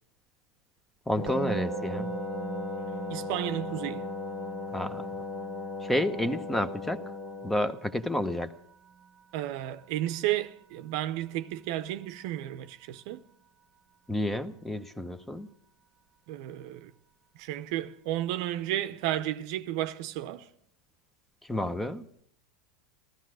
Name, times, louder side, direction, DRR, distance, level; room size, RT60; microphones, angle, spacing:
Wind instrument woodwind instrument, 1.1-7.7, left 3 dB, 35° left, 1.4 m, -37 dB
voice 1, 1.1-2.1 4.7-5.0 5.8-7.0 7.4-8.5 14.1-15.5 21.5-22.0, left 1 dB, 5° left, 0.8 m, -30 dB
Musical instrument, 1.3-12.4, right 7 dB, 35° right, 1.0 m, -42 dB
voice 2, 3.1-4.1 9.3-13.2 16.3-16.9 17.4-20.5, right 13 dB, 60° right, 0.8 m, -32 dB
14.5 x 14.0 x 6.3 m
hypercardioid pair, 100°, 3 cm